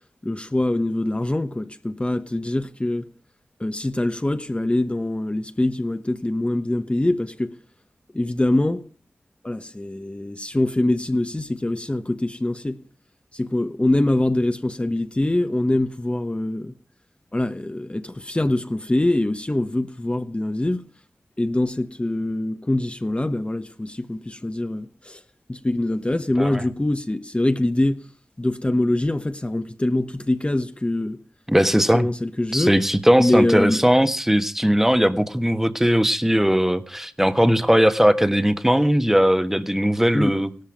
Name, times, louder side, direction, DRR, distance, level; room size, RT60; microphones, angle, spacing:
voice 1, 0.2-3.1 3.6-7.5 8.1-8.8 9.4-12.8 13.3-16.7 17.3-20.8 21.4-25.2 25.5-28.0 28.4-31.2 31.7-32.7 33.2-33.8 40.1-40.4, left 1 dB, 25° left, 1.2 m, -24 dB
voice 2, 31.5-32.1 32.5-40.5, equal, 5° right, 1.5 m, -19 dB
17.0 x 13.5 x 5.1 m
cardioid pair, 45°, 5 cm